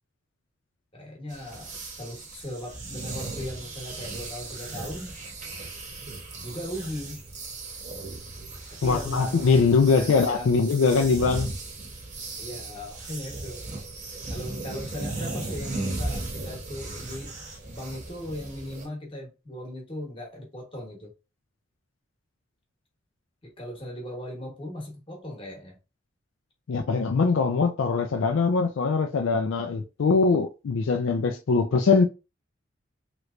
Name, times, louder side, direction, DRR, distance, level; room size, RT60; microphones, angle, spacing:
voice 1, 0.9-1.7 2.0-5.1 6.4-7.2 8.7-9.6 9.9-10.5 12.4-13.6 14.3-17.4 17.7-21.1 23.4-25.8, left 1 dB, 25° left, 1.1 m, -38 dB
sound 1, 1.3-18.9, right 2 dB, 40° right, 0.9 m, -37 dB
voice 2, 8.8-11.5 26.7-32.0, left 4 dB, 75° left, 0.4 m, -22 dB
3.2 x 3.0 x 2.5 m
head